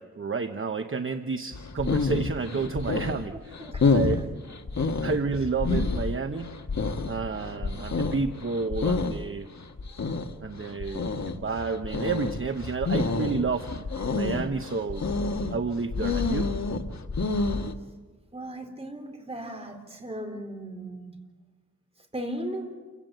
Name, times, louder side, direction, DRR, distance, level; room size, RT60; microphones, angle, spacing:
voice 1, 0.0-3.5 3.9-4.2 5.0-6.5 7.1-9.5 10.4-13.7 14.1-15.0 15.5-16.5, right 4 dB, 45° right, 7 dB, 1.0 m, -30 dB
sound 1, 1.5-17.7, left 3 dB, 70° left, 1.5 m, -28 dB
voice 2, 3.6-4.3 18.3-21.2 22.1-22.7, right 1 dB, 20° right, 4 dB, 3.9 m, -37 dB
28.5 x 16.5 x 9.2 m, 1.3 s
wide cardioid pair, 115°, 29 cm